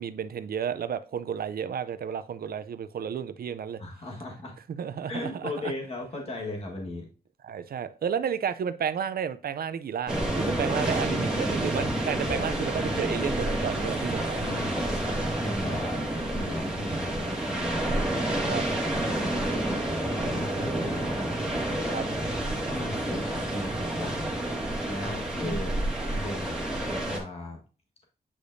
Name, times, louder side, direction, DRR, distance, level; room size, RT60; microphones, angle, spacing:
voice 1, 0.0-3.8 4.8-5.5 7.4-14.4 18.5-18.6 21.9-22.1, right 8 dB, 70° right, 0.5 m, -32 dB
voice 2, 3.8-4.5 5.1-7.1 14.3-16.0 16.3-18.7 19.1-22.1 22.7-24.3 24.9-25.8 26.1-27.6, left 2 dB, 40° left, 1.5 m, -37 dB
sound 1, 10.1-27.2, right 1 dB, 5° right, 1.8 m, -29 dB
8.6 x 5.0 x 2.6 m
wide cardioid pair, 145°, 16 cm